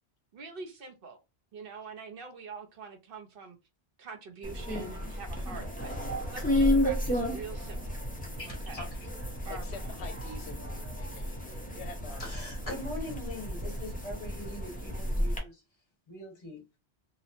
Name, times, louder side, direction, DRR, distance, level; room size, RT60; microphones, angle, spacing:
voice 1, 0.3-1.2 1.5-3.6 4.0-8.0 8.5-8.8 9.4-9.8, right 5 dB, 65° right, 0.8 m, -45 dB
sound 1, 4.4-15.4, left 1 dB, 10° left, 0.4 m, -32 dB
voice 2, 8.4-8.9 12.2-15.6 16.1-16.6, left 1 dB, 35° left, 1.2 m, -41 dB
voice 3, 9.5-12.2, left 4 dB, 85° left, 0.9 m, -46 dB
2.8 x 2.0 x 2.5 m
omnidirectional pair, 1.1 m